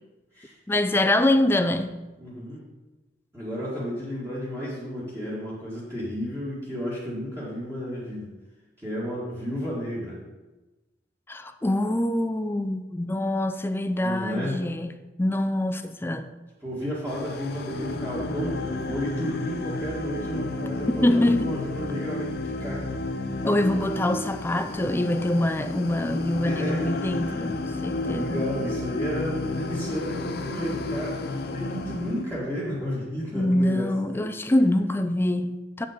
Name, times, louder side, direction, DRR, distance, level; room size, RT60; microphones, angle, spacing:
voice 1, 0.7-2.0 11.3-16.4 21.0-21.5 23.4-28.5 33.3-35.9, left 1 dB, 10° left, 8 dB, 0.4 m, -25 dB
voice 2, 2.2-2.6 3.3-8.3 8.8-10.2 14.0-14.6 16.6-22.9 26.4-26.9 28.0-34.3, equal, 15° right, -9 dB, 1.9 m, -32 dB
sound 1, 17.1-32.2, left 2 dB, 60° left, 0.6 m, -32 dB
7.9 x 5.5 x 5.1 m, 1.1 s
head